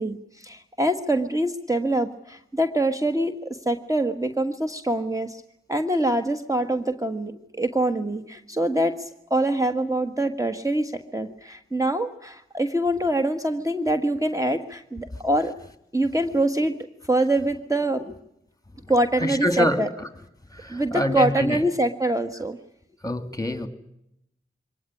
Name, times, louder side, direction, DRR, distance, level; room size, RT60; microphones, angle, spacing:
voice 1, 0.0-5.4 5.7-15.5 15.9-16.8 17.0-18.1 18.9-19.9 20.7-22.6, right 1 dB, 15° right, 7 dB, 1.5 m, -25 dB
voice 2, 19.2-20.1 20.5-21.6 23.0-23.7, equal, 15° left, 9 dB, 2.8 m, -25 dB
23.5 x 18.5 x 9.9 m, 0.80 s
wide cardioid pair, 50°, 21 cm